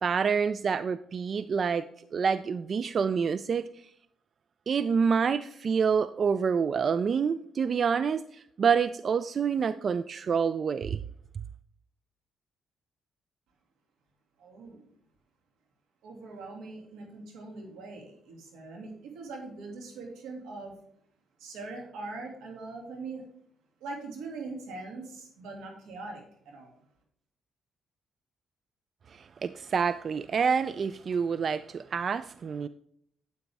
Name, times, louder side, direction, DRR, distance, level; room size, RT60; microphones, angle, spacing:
voice 1, 0.0-1.9 2.1-3.9 4.7-11.0 29.1-32.7, right 6 dB, 50° right, 14 dB, 0.3 m, -27 dB
voice 2, 14.4-14.9 16.0-20.8 21.4-23.2 23.8-26.7, right 3 dB, 85° right, 1 dB, 2.4 m, -42 dB
9.4 x 8.1 x 3.5 m, 0.68 s
cardioid pair, 90°, 0 cm